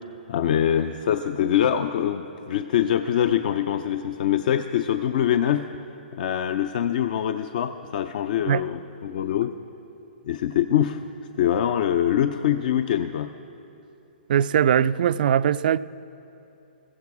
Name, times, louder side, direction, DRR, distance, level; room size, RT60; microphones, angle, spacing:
voice 1, 0.3-5.7 6.1-9.5 10.3-11.0 11.4-13.3, left 10 dB, 55° left, 0.5 m, -24 dB
voice 2, 14.3-15.8, right 9 dB, 60° right, 0.4 m, -20 dB
15.5 x 15.0 x 4.8 m
hypercardioid pair, 130°, 5 cm